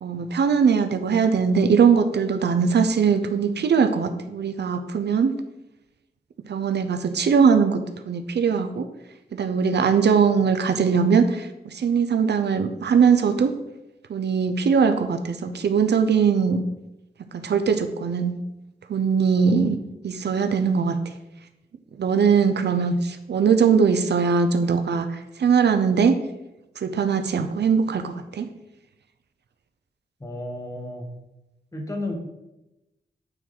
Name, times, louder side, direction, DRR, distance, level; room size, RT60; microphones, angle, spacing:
voice 1, 0.0-5.3 6.5-8.9 9.3-13.5 14.1-16.6 17.3-18.4 18.9-19.8 20.0-21.0 22.0-26.2 26.8-28.5, right 6 dB, 70° right, 8 dB, 0.6 m, -21 dB
voice 2, 30.2-31.1 31.7-32.1, left 2 dB, 20° left, 1 dB, 1.6 m, -32 dB
8.9 x 4.5 x 3.9 m, 0.95 s
wide cardioid pair, 115°, 18 cm